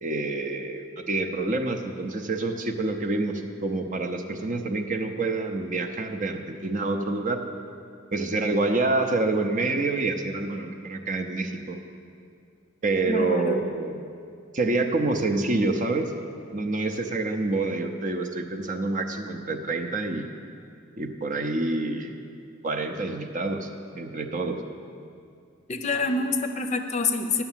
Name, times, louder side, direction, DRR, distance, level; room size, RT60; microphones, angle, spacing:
voice 1, 0.0-7.4 8.1-11.8 12.8-14.0 14.5-16.1 16.5-20.3 21.0-22.1 22.6-23.7 23.9-24.6, right 2 dB, 40° right, 6 dB, 0.7 m, -27 dB
voice 2, 13.1-13.7 25.7-27.4, left 3 dB, 35° left, 6 dB, 0.6 m, -27 dB
10.5 x 7.0 x 7.4 m, 2.4 s
head